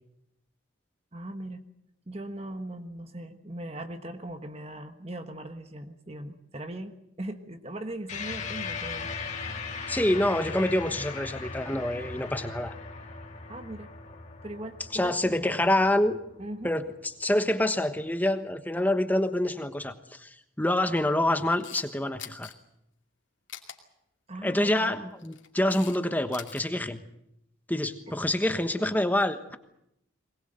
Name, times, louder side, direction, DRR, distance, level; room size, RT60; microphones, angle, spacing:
voice 1, 1.1-1.6 2.1-9.1 13.5-13.9 14.4-15.4 16.4-16.7 24.3-24.9 28.1-28.2, right 1 dB, 30° right, 7 dB, 1.3 m, -39 dB
sound 1, 8.1-16.8, left 4 dB, 35° left, 2.7 m, -39 dB
voice 2, 9.9-12.7 14.9-16.2 16.6-22.5 24.4-27.0 27.7-29.6, left 1 dB, 10° left, 9 dB, 1.2 m, -27 dB
Camera, 21.4-21.9 22.2-22.5 23.5-23.8 25.0-26.0 26.2-26.6, left 10 dB, 65° left, 2.6 m, -43 dB
22.0 x 20.5 x 7.9 m, 0.81 s
head